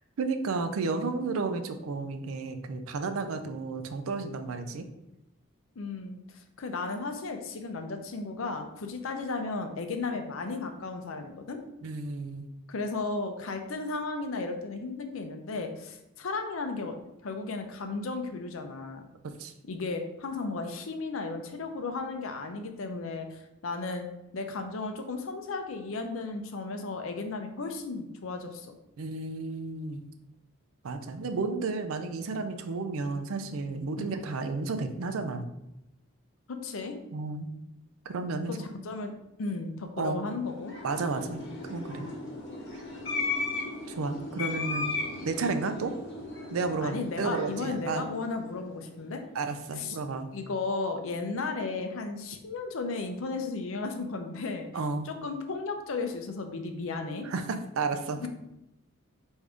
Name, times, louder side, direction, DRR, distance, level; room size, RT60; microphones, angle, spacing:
voice 1, 0.2-4.9 11.8-12.5 19.2-19.5 29.0-30.0 30.8-35.5 37.1-37.5 38.1-38.6 40.0-40.3 40.8-42.1 43.9-44.9 45.2-45.9 46.5-48.0 49.3-50.3 54.7-55.1 57.2-58.3, right 3 dB, 75° right, 7 dB, 0.4 m, -32 dB
voice 2, 5.8-11.6 12.7-17.0 17.2-19.1 19.7-24.1 24.3-28.7 34.0-34.2 36.5-37.0 38.5-39.1 39.4-40.8 46.8-49.2 49.8-50.0 50.3-54.7 55.0-57.3, left 3 dB, 70° left, 5 dB, 0.5 m, -34 dB
sound 1, 40.4-48.9, left 3 dB, 55° left, 1.1 m, -36 dB
4.9 x 2.6 x 3.4 m, 0.89 s
head